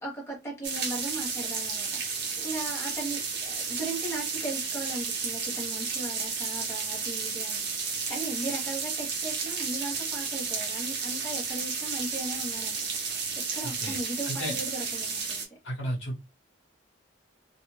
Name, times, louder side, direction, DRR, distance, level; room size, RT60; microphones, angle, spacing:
voice 1, 0.0-15.4, right 2 dB, 15° left, 0.9 m, -38 dB
sound 1, 0.6-15.5, right 5 dB, 55° right, 0.8 m, -32 dB
voice 2, 15.6-16.2, equal, 65° left, 1.1 m, -32 dB
2.5 x 2.3 x 3.1 m
head